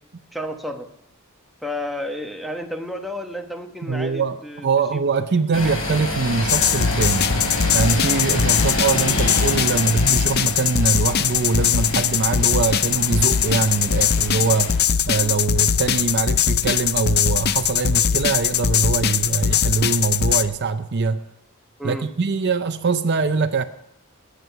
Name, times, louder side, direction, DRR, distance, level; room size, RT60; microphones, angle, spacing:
voice 1, 0.3-0.9 1.6-4.7 4.9-5.0 5.5-5.7 15.1-15.4 21.8-22.1, left 1 dB, ahead, 3 dB, 1.2 m, -31 dB
voice 2, 3.9-7.3 7.7-14.8 15.1-21.2 21.8-23.6, right 4 dB, 50° right, 11 dB, 0.6 m, -23 dB
sound 1, 5.5-14.7, left 1 dB, 65° left, 5.1 m, -28 dB
sound 2, 6.5-20.4, left 8 dB, 45° left, 0.5 m, -21 dB
20.5 x 9.3 x 5.7 m, 0.80 s
head